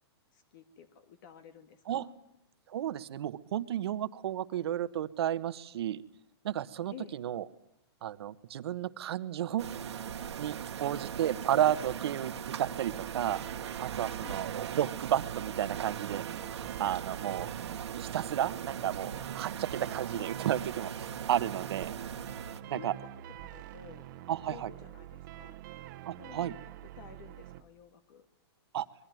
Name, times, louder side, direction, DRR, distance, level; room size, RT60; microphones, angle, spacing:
voice 1, 0.3-2.1 6.9-7.2 10.8-11.1 14.2-14.5 20.1-20.3 22.7-23.1 23.4-24.1 24.5-25.6 26.2-26.7 27.0-28.3, left 8 dB, 50° left, 9 dB, 2.0 m, -51 dB
voice 2, 2.7-6.0 6.4-7.4 8.0-9.7 10.4-13.4 13.8-14.5 14.7-16.2 16.8-17.5 17.9-22.0 22.7-22.9 24.3-24.7 26.0-26.5 28.7-28.9, right 11 dB, 65° right, 13 dB, 1.4 m, -32 dB
sound 1, 9.6-22.6, right 8 dB, 85° right, 2.0 m, -39 dB
sound 2, 12.9-27.6, right 12 dB, 45° right, 1.4 m, -46 dB
25.5 x 22.0 x 9.3 m, 0.81 s
hypercardioid pair, 150°, 14 cm